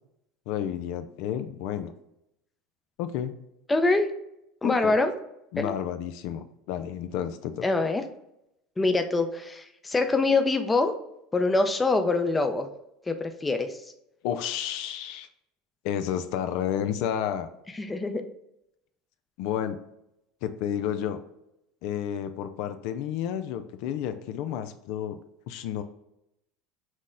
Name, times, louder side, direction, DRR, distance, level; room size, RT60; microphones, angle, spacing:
voice 1, 0.5-1.9 3.0-3.3 4.6-5.0 5.5-7.7 14.2-15.3 15.8-17.5 19.4-19.8 20.4-21.2 21.8-25.2 25.5-25.8, left 9 dB, 70° left, 9 dB, 0.4 m, -31 dB
voice 2, 3.7-4.1 4.6-5.1 5.6-5.7 7.6-8.0 8.8-10.9 11.3-12.7 13.1-13.8 17.8-18.3, left 3 dB, 15° left, 7 dB, 0.5 m, -24 dB
6.2 x 2.1 x 3.7 m, 0.82 s
supercardioid pair, 100°, 0 cm